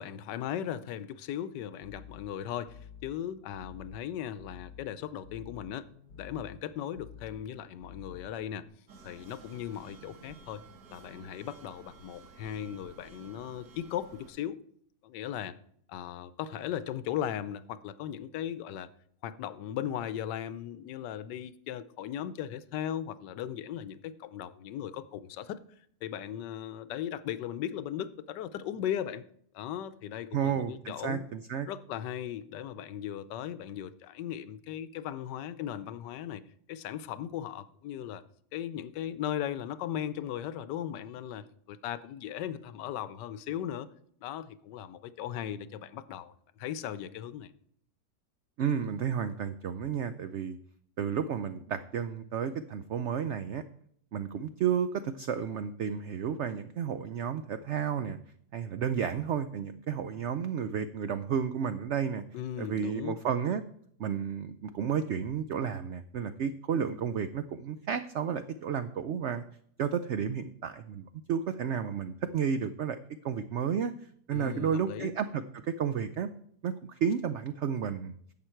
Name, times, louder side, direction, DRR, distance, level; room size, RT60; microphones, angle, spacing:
voice 1, 0.0-5.9 6.2-8.7 9.0-10.6 10.9-14.6 15.0-15.6 15.9-18.9 19.2-25.6 26.0-29.2 29.5-31.3 31.7-36.4 36.7-38.2 38.5-43.9 44.2-47.5 62.3-63.1 74.3-75.1, left 10 dB, 90° left, 1.3 m, -37 dB
sound 1, 1.8-8.7, left 7 dB, 65° left, 2.1 m, -51 dB
sound 2, 8.9-14.3, right 4 dB, 65° right, 1.7 m, -53 dB
voice 2, 30.3-31.7 48.6-50.6 51.0-53.6 54.1-58.2 58.5-62.2 62.6-63.6 64.0-69.4 69.8-73.0 73.2-73.9 74.3-76.3 76.6-78.2, right 7 dB, 85° right, 0.6 m, -32 dB
11.0 x 7.7 x 4.5 m
omnidirectional pair, 1.8 m